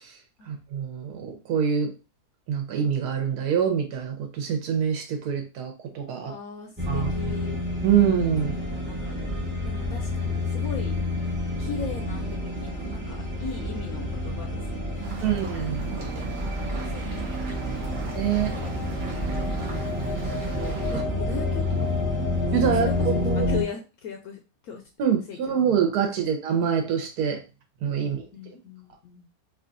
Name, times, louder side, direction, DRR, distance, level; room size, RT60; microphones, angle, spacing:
voice 1, 0.5-1.9 2.5-6.3 6.9-7.1 7.8-8.5 15.2-16.0 18.2-18.5 20.6-21.0 22.5-23.5 25.0-27.4 27.8-28.3, right 8 dB, 75° right, 4 dB, 1.3 m, -25 dB
voice 2, 6.3-7.6 8.6-9.3 9.6-11.0 11.6-15.2 15.9-16.4 16.9-17.9 18.6-19.1 20.0-20.4 20.9-24.8 25.3-25.6 26.2-26.3 28.0-29.3, left 6 dB, 70° left, 3 dB, 1.0 m, -39 dB
sound 1, 6.8-23.6, left 1 dB, 15° right, 0.4 m, -29 dB
sound 2, 15.0-21.0, right 3 dB, 55° right, 1.2 m, -41 dB
3.1 x 2.4 x 3.8 m, 0.30 s
omnidirectional pair, 1.7 m